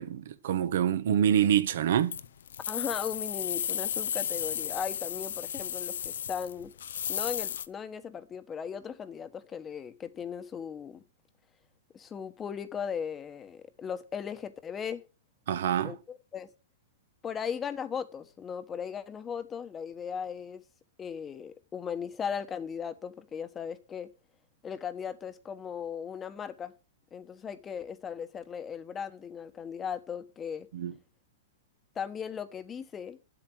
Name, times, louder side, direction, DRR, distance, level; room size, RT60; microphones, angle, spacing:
voice 1, 0.0-2.2 15.5-15.9 30.7-30.9, right 9 dB, 70° right, 1.2 m, -26 dB
sound 1, 2.1-7.7, left 9 dB, 80° left, 0.7 m, -34 dB
voice 2, 2.7-6.7 7.1-11.0 11.9-15.0 15.8-16.5 17.2-20.6 21.0-24.1 24.6-26.7 27.1-30.7 31.9-33.2, left 7 dB, 20° left, 1.1 m, -37 dB
9.7 x 7.9 x 6.1 m
hypercardioid pair, 140°, 0 cm